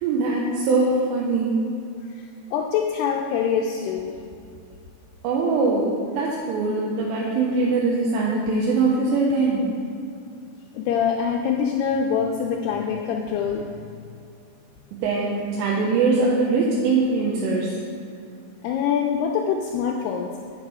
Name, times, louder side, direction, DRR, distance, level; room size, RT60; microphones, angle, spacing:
voice 1, 0.0-1.6 5.2-9.6 14.9-17.8, right 3 dB, 90° right, -4 dB, 3.1 m, -22 dB
voice 2, 2.5-4.2 10.8-13.6 18.6-20.3, left 7 dB, 80° left, 1 dB, 2.5 m, -24 dB
8.8 x 7.2 x 4.8 m, 2.4 s
omnidirectional pair, 4.9 m